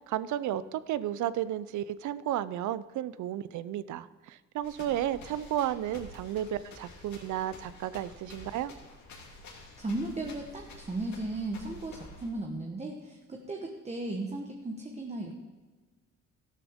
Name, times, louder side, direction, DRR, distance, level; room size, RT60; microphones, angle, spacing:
voice 1, 0.0-8.7, right 12 dB, 75° right, 17 dB, 0.5 m, -33 dB
sound 1, 4.6-12.3, left 2 dB, 70° left, 2.8 m, -49 dB
voice 2, 9.8-15.3, right 2 dB, 20° right, 2 dB, 1.2 m, -36 dB
13.0 x 12.5 x 3.6 m, 1.3 s
cardioid pair, 90°, 30 cm